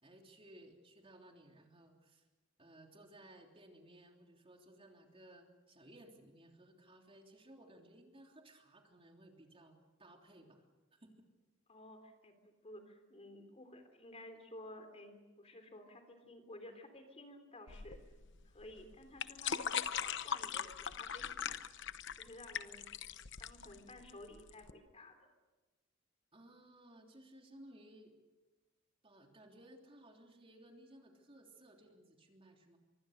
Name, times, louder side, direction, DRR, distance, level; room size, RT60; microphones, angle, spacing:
voice 1, 0.0-2.3 2.6-10.6 10.9-11.3 23.7-23.9 26.3-28.1 29.0-32.8, right 1 dB, 30° right, 2 dB, 3.3 m, -59 dB
voice 2, 11.7-18.0 18.5-21.5 22.2-22.9 23.4-25.3, left 1 dB, 35° left, 6 dB, 3.5 m, -54 dB
sound 1, 17.7-24.7, left 8 dB, 65° left, 0.9 m, -41 dB
25.5 x 24.5 x 6.6 m, 1.2 s
head